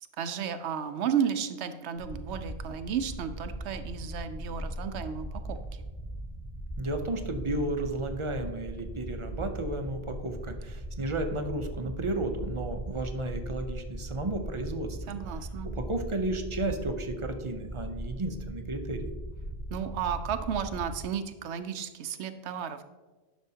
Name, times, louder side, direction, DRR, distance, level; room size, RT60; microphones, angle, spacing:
voice 1, 0.2-5.8 15.1-15.7 19.7-22.8, right 8 dB, 85° right, 9 dB, 0.9 m, -33 dB
sound 1, 1.9-21.0, right 1 dB, 55° left, 1.9 m, -39 dB
voice 2, 6.8-15.0 15.6-19.1, right 2 dB, 35° right, 6 dB, 0.6 m, -33 dB
10.5 x 6.2 x 2.8 m, 1.3 s
omnidirectional pair, 1.1 m